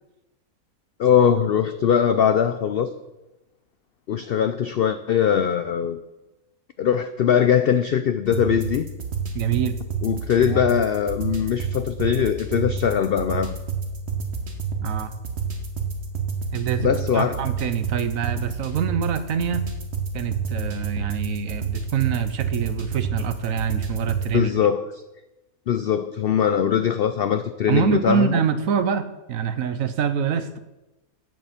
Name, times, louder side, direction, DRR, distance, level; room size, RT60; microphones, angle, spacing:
voice 1, 1.0-2.9 4.1-6.0 6.8-8.9 10.0-13.6 16.8-17.5 24.3-24.9 25.7-28.3, left 8 dB, 90° left, 11 dB, 0.5 m, -21 dB
sound 1, 8.3-24.3, right 5 dB, 45° right, 1.5 m, -29 dB
voice 2, 9.3-9.8 14.8-15.1 16.5-19.7 20.1-24.5 27.7-30.6, right 7 dB, 65° right, 11 dB, 1.1 m, -25 dB
8.1 x 7.7 x 7.2 m, 1.0 s
omnidirectional pair, 1.6 m